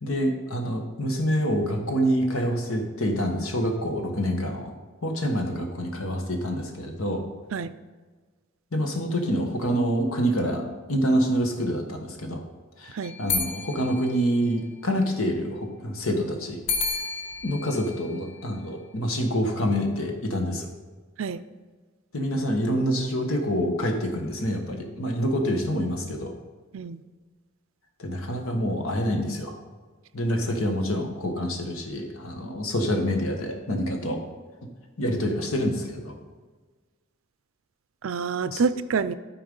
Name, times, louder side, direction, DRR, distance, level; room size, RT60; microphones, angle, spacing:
voice 1, 0.0-4.7 5.0-7.2 8.7-10.6 10.9-12.4 12.8-16.6 17.4-20.7 22.1-26.3 28.0-29.5 30.1-34.2 34.6-34.7 35.0-36.1 38.5-38.6, equal, 85° left, 4 dB, 1.4 m, -26 dB
sound 1, 13.0-15.0 16.7-19.1, left 4 dB, 60° left, 0.9 m, -33 dB
voice 2, 38.0-39.1, right 5 dB, 75° right, 14 dB, 0.5 m, -27 dB
12.5 x 4.6 x 5.4 m, 1.4 s
head